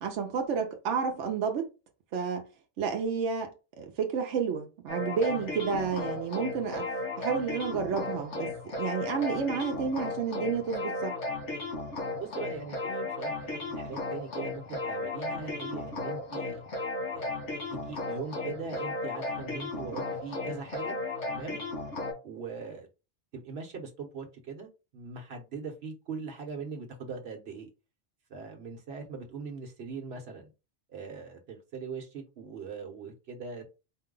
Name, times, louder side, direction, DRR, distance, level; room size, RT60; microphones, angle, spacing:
voice 1, 0.0-1.7 2.1-2.4 2.8-3.5 3.8-6.9 7.2-8.5 8.8-11.2, right 6 dB, 90° right, 1.0 m, -30 dB
sound 1, 4.9-22.1, left 2 dB, 85° left, 1.9 m, -35 dB
voice 2, 12.1-16.6 17.1-17.3 17.7-21.0 21.3-21.6 22.2-22.9 23.3-27.7 28.3-30.5 30.9-33.8, right 5 dB, 65° right, 1.2 m, -41 dB
4.6 x 2.2 x 3.7 m
omnidirectional pair, 1.2 m